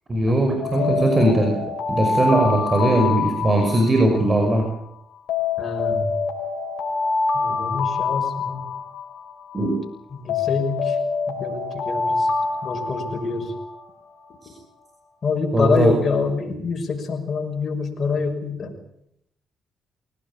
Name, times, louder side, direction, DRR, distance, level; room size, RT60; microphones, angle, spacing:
voice 1, 0.1-1.6 1.9-4.7 9.5-9.8 14.4-14.5 15.5-15.9, right 1 dB, 30° right, 3 dB, 5.6 m, -19 dB
Alarm, 0.6-4.7 5.3-9.7 10.3-14.1, left 4 dB, 75° left, 4.8 m, -26 dB
voice 2, 5.6-6.0 7.3-8.7 10.1-11.0 11.3-12.3 12.6-13.5 15.2-18.7, left 4 dB, 45° left, 2 dB, 6.3 m, -26 dB
22.0 x 18.0 x 8.8 m, 0.73 s
cardioid pair, 90°, 0 cm